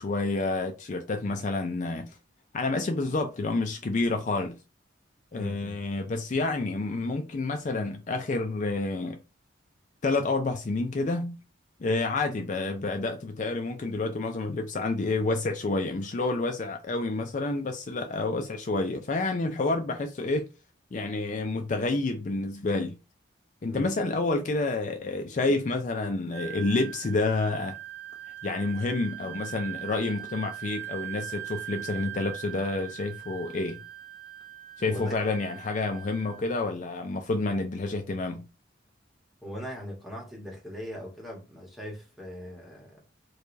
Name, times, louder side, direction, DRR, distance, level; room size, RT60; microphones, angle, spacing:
voice 1, 0.0-2.1 2.5-4.6 5.3-9.2 10.0-11.4 11.8-20.5 20.9-23.0 23.6-27.8 28.4-33.8 34.8-38.5, left 3 dB, 40° left, 0.4 m, -29 dB
voice 2, 5.3-5.8 23.7-23.9 34.8-35.2 39.4-43.0, equal, ahead, 1.1 m, -40 dB
Wind instrument woodwind instrument, 26.3-36.7, right 12 dB, 80° right, 1.0 m, -41 dB
4.7 x 2.3 x 2.6 m
head